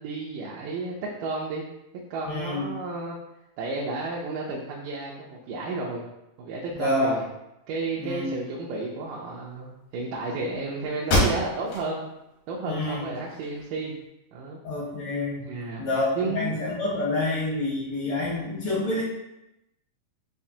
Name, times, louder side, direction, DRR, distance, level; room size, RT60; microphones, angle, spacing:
voice 1, 0.0-1.6 2.1-3.2 3.6-6.0 6.4-7.2 7.7-12.0 12.5-13.9 14.3-14.6 15.4-15.8 16.2-16.6, right 3 dB, 80° right, -4 dB, 2.1 m, -32 dB
voice 2, 2.2-2.7 6.8-7.2 8.0-8.3 12.7-13.0 14.6-15.4 15.8-19.0, left 2 dB, 70° left, -6 dB, 1.2 m, -27 dB
sound 1, 10.5-10.6 11.0-11.9 12.4-12.5 13.0-13.9, left 1 dB, 90° left, 3.4 m, -26 dB
7.1 x 2.5 x 2.7 m, 0.89 s
omnidirectional pair, 4.0 m